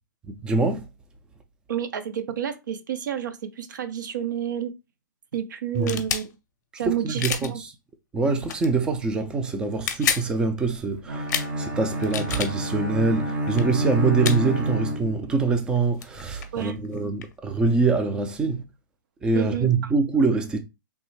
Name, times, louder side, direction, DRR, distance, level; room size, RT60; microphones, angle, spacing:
voice 1, 0.3-0.9 5.7-6.0 6.9-7.7 8.1-11.3 11.6-18.6 19.2-20.6, right 4 dB, 10° right, 0.3 m, -24 dB
voice 2, 1.7-4.7 5.3-6.3 6.8-7.6 16.5-16.8 19.3-19.7, right 9 dB, 65° right, 0.5 m, -30 dB
sound 1, 5.7-6.3 7.2-7.5 8.4-8.7 9.7-10.3 11.3-11.5 12.0-12.5 13.5-13.6 14.2-14.4 15.8-15.9 16.0-17.3, left 8 dB, 55° left, 0.6 m, -28 dB
Bowed string instrument, 11.1-15.5, right 1 dB, 85° right, 1.1 m, -28 dB
3.2 x 2.0 x 3.1 m
hypercardioid pair, 150°, 11 cm